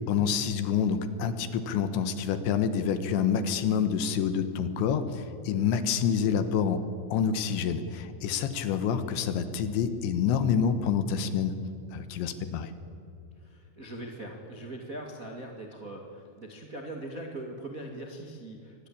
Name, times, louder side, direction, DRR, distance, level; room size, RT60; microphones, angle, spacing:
voice 1, 0.1-6.8 7.1-11.5 11.9-12.7, left 7 dB, 70° left, 11 dB, 3.2 m, -27 dB
voice 2, 13.4-18.9, right 1 dB, 70° right, 1 dB, 0.8 m, -41 dB
25.5 x 20.0 x 8.7 m, 2.6 s
omnidirectional pair, 6.0 m